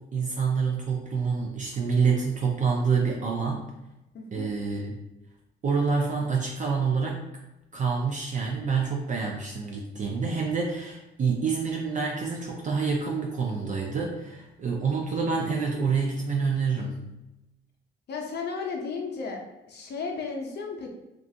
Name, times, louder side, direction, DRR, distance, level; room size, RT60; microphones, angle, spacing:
voice 1, 0.0-3.7 4.3-4.9 5.6-7.2 7.7-17.0, right 5 dB, 40° right, -1 dB, 0.4 m, -27 dB
voice 2, 4.1-4.5 18.1-19.4 19.7-20.9, left 4 dB, 55° left, 1 dB, 0.6 m, -34 dB
2.4 x 2.3 x 2.7 m, 0.95 s
cardioid pair, 90°, 20 cm